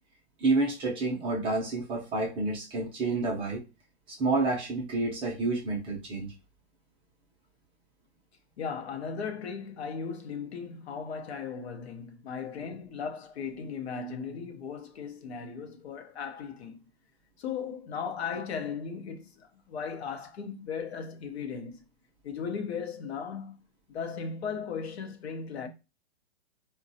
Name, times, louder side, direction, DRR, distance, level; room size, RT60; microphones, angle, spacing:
voice 1, 0.4-3.6 4.1-6.3, right 3 dB, 15° right, 0.5 m, -29 dB
voice 2, 8.6-16.8 17.4-21.8 22.2-23.6 23.9-25.7, left 6 dB, 70° left, 0.7 m, -37 dB
3.8 x 2.2 x 2.6 m
hypercardioid pair, 135°, 33 cm